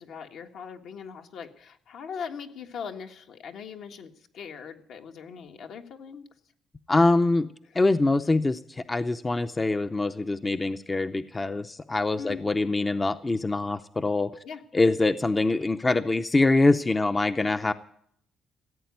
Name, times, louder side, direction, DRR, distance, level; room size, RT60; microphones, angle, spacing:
voice 1, 0.0-6.3 7.7-7.8 12.2-12.4 14.4-14.6 17.4-17.5, left 6 dB, 70° left, 4 dB, 1.7 m, -40 dB
voice 2, 6.9-7.5 7.7-14.3 14.7-17.7, left 2 dB, 20° left, 11 dB, 0.6 m, -24 dB
16.0 x 8.6 x 9.4 m, 0.67 s
cardioid pair, 110°, 0 cm